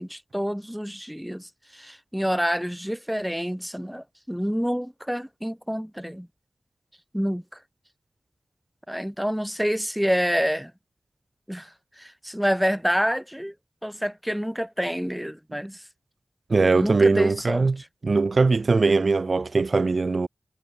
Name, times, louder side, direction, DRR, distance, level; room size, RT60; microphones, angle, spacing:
voice 1, 0.0-6.3 7.1-7.4 8.9-10.7 11.5-11.7 12.0-13.5 13.8-15.8 16.6-17.7, equal, 5° right, 3.1 m, -27 dB
voice 2, 16.5-20.3, right 3 dB, 65° right, 0.7 m, -21 dB
cardioid pair, 50°, 0 cm